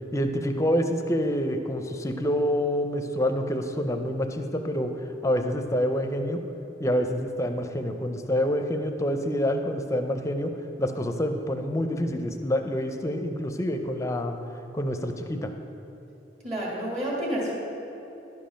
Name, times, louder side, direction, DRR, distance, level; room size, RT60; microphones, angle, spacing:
voice 1, 0.1-6.4 6.8-10.5 10.8-14.4 14.7-15.5, equal, 15° left, 6 dB, 0.5 m, -27 dB
voice 2, 16.4-17.5, equal, 40° right, -5 dB, 2.0 m, -29 dB
10.5 x 5.2 x 5.7 m, 2.9 s
head